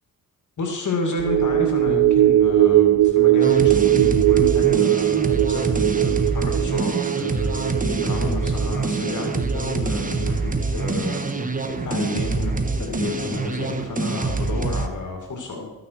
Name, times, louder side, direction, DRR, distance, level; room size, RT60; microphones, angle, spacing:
voice 1, 0.6-11.4 11.8-15.7, left 3 dB, 60° left, 2 dB, 2.3 m, -30 dB
sound 1, 1.2-11.8 12.1-12.3, right 14 dB, 90° right, 0.6 m, -20 dB
sound 2, 3.4-14.9, right 3 dB, 25° right, 1.3 m, -25 dB
14.0 x 9.5 x 4.6 m, 1.1 s
cardioid pair, 85°, 34 cm